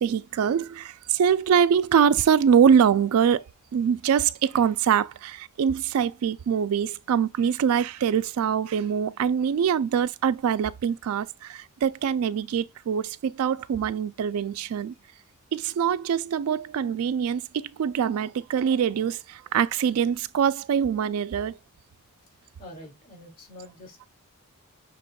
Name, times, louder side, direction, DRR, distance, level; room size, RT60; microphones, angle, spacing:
voice 1, 0.0-3.4 3.7-14.9 15.5-21.6, right 7 dB, 70° right, 0.3 m, -24 dB
voice 2, 22.6-24.1, left 1 dB, 40° left, 2.4 m, -45 dB
6.5 x 3.4 x 2.3 m
head